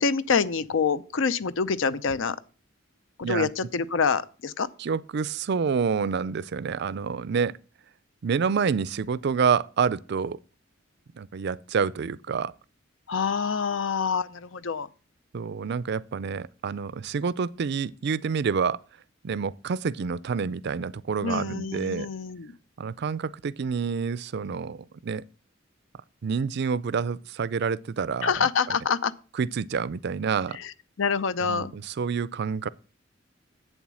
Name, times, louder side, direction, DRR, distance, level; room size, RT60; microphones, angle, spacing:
voice 1, 0.0-2.4 3.3-4.7 13.1-14.9 21.2-22.5 28.2-29.1 30.5-31.7, left 5 dB, 75° left, 0.6 m, -26 dB
voice 2, 4.8-7.6 8.2-10.4 11.1-12.5 15.3-18.8 19.2-22.1 22.8-25.2 26.2-28.3 29.4-30.6 31.4-32.7, right 6 dB, 60° right, 0.4 m, -28 dB
8.3 x 7.2 x 6.1 m
head